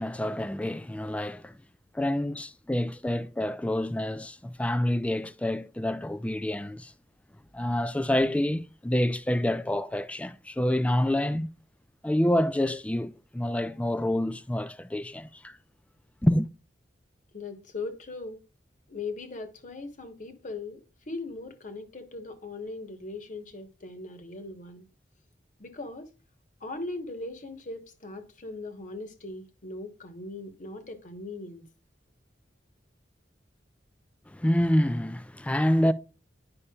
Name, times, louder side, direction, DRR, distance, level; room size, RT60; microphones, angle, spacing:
voice 1, 0.0-1.6 1.9-6.9 7.5-11.5 12.0-15.6 16.2-16.5 34.3-35.9, left 1 dB, 5° left, 0.3 m, -27 dB
voice 2, 17.3-18.4 18.9-24.8 25.6-26.1 26.6-31.7, left 3 dB, 45° left, 1.1 m, -39 dB
9.8 x 5.4 x 2.3 m
head